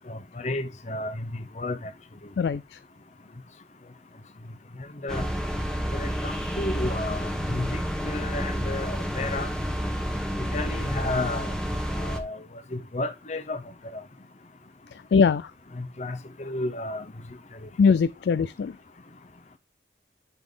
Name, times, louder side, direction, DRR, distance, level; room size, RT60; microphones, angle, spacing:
voice 1, 0.1-1.3 1.6-1.9 5.0-5.3 5.9-9.5 10.5-11.5 12.0-12.4 12.7-13.6 13.9-14.0 15.8-17.1, left 2 dB, 40° left, 0.7 m, -32 dB
voice 2, 2.4-2.8 14.9-15.5 17.8-18.7, left 5 dB, 70° left, 0.3 m, -22 dB
sound 1, 5.1-12.2, equal, 5° left, 1.1 m, -30 dB
10.5 x 3.9 x 3.8 m
head